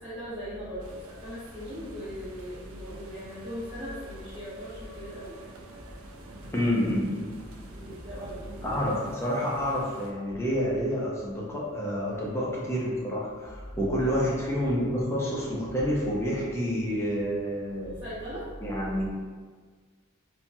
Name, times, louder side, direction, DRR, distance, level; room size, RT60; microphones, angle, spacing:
voice 1, 0.0-5.4 7.7-8.8 13.9-14.2 18.0-18.5, equal, 15° right, -14 dB, 1.1 m, -39 dB
sound 1, 0.8-10.1, right 1 dB, 65° right, 0.4 m, -48 dB
voice 2, 6.5-7.4 8.6-18.0 18.6-19.1, equal, 10° left, -6 dB, 0.5 m, -28 dB
2.9 x 2.2 x 2.6 m, 1.5 s
head